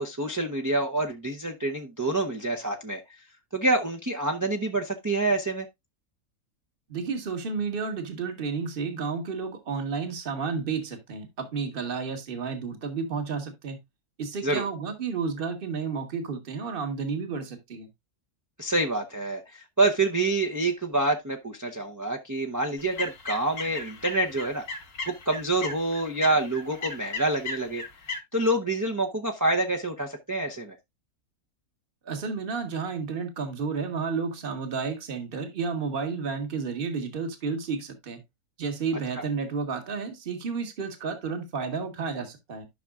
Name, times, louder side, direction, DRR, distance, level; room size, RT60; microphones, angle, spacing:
voice 1, 0.0-3.0 3.5-5.7 14.4-14.7 18.6-24.6 25.1-27.8 28.3-30.8 39.2-39.3, right 2 dB, 20° right, 0.6 m, -27 dB
voice 2, 6.9-13.8 14.2-17.9 32.0-38.2 38.6-42.7, right 5 dB, 40° right, 1.5 m, -31 dB
sound 1, 22.8-28.2, left 3 dB, 75° left, 2.1 m, -36 dB
12.0 x 5.9 x 2.4 m
omnidirectional pair, 1.6 m